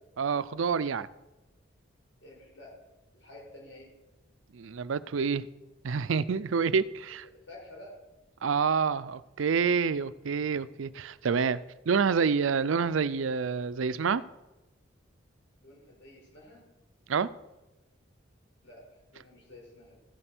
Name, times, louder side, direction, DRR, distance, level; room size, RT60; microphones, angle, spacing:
voice 1, 0.2-1.1 4.5-5.5 5.8-7.2 8.4-11.6 11.9-14.2 17.1-17.3, right 5 dB, 85° right, 17 dB, 0.5 m, -27 dB
voice 2, 2.2-2.8 3.1-3.9 7.5-8.0 10.7-10.9 15.6-16.6 18.6-20.0, left 1 dB, 70° left, -2 dB, 4.9 m, -50 dB
14.5 x 7.8 x 6.0 m, 1.0 s
head